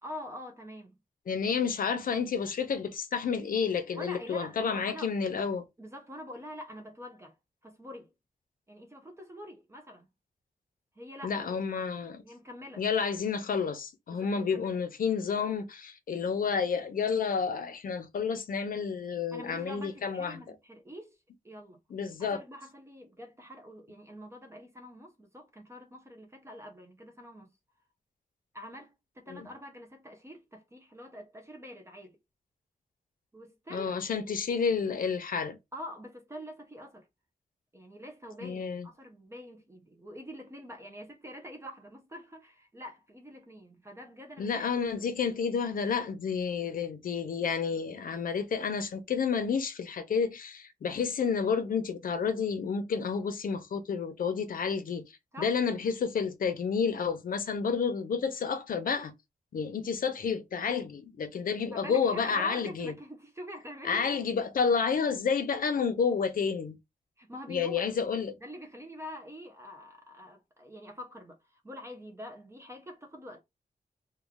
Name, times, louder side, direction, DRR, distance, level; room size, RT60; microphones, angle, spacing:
voice 1, 0.0-1.0 3.9-5.1 5.8-7.3 7.6-8.1 8.7-10.1 11.0-11.6 12.2-12.8 14.1-14.8 19.3-21.2 21.4-21.8 22.2-27.5 28.5-32.2 33.3-34.0 35.7-37.1 37.7-44.7 55.3-55.6 61.7-64.2 67.2-67.8 68.4-73.4, equal, 20° right, 0.6 m, -45 dB
voice 2, 1.3-5.6 11.2-12.2 12.8-20.4 21.9-22.4 29.3-29.4 33.7-35.6 38.4-38.9 44.4-55.0 55.4-59.1 59.5-62.9 63.8-66.8 67.5-68.3, left 6 dB, 80° left, 0.7 m, -30 dB
3.1 x 2.3 x 3.5 m
wide cardioid pair, 175°, 14 cm